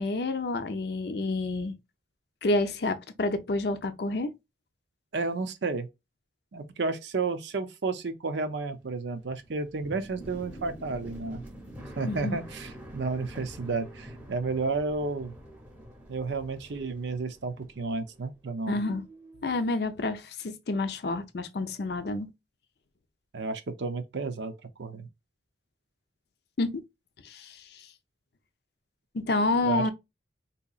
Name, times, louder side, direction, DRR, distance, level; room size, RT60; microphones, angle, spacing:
voice 1, 0.0-1.7 2.4-4.3 12.0-12.4 18.7-19.1 19.4-22.3 26.6-26.8 27.2-27.9 29.1-29.9, left 2 dB, 55° left, 0.5 m, -29 dB
voice 2, 5.1-5.9 6.5-11.4 12.0-15.3 16.1-18.8 23.3-24.5 24.8-25.1 29.6-29.8, right 3 dB, 65° right, 0.6 m, -32 dB
sound 1, 8.5-18.5 18.7-19.6, right 1 dB, 5° right, 0.8 m, -46 dB
3.8 x 2.8 x 2.3 m
head